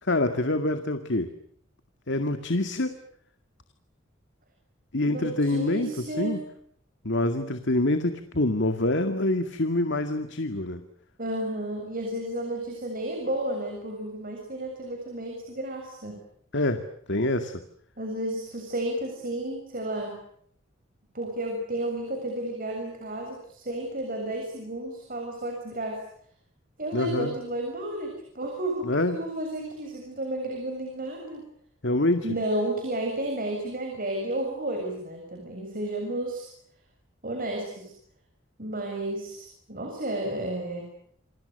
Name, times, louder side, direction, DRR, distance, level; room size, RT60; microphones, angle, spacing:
voice 1, 0.0-1.3 2.1-3.0 4.9-6.4 7.0-10.8 16.5-16.8 17.1-17.5 26.9-27.3 28.8-29.2 31.8-32.3, left 2 dB, 60° left, 8 dB, 2.2 m, -26 dB
voice 2, 5.1-6.4 11.2-16.2 18.0-20.2 21.1-26.0 26.8-31.5 32.2-36.5 37.2-37.9 38.6-40.9, right 1 dB, 45° right, 3 dB, 7.2 m, -32 dB
29.0 x 27.5 x 6.7 m, 0.66 s
head